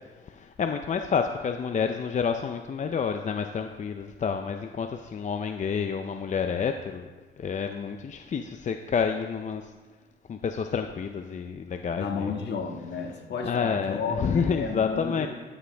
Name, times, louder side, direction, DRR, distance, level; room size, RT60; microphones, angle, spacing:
voice 1, 0.3-7.1 7.4-9.6 10.3-12.3 13.4-15.3, left 6 dB, 40° left, 6 dB, 0.6 m, -29 dB
voice 2, 12.0-15.3, left 5 dB, 60° left, 2 dB, 1.6 m, -32 dB
13.0 x 7.6 x 3.4 m, 1.3 s
cardioid pair, 90°, 20 cm